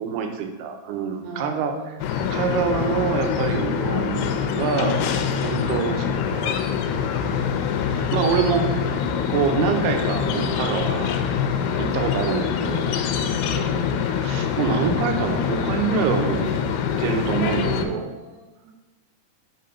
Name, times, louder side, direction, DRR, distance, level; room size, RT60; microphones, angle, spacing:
voice 1, 0.0-1.7 2.3-5.0 5.4-6.6 8.1-8.9 9.3-11.2 11.8-12.9 14.2-16.7 17.0-18.0, right 6 dB, 85° right, 5 dB, 2.7 m, -25 dB
voice 2, 1.2-1.9 4.9-5.1 5.4-5.8 7.3-7.6 7.8-8.6 13.4-14.0 17.6-18.7, right 4 dB, 70° right, 0 dB, 1.8 m, -38 dB
sound 1, 2.0-17.9, left 7 dB, 90° left, 2.6 m, -24 dB
6.0 x 3.8 x 5.6 m, 1.1 s
omnidirectional pair, 4.5 m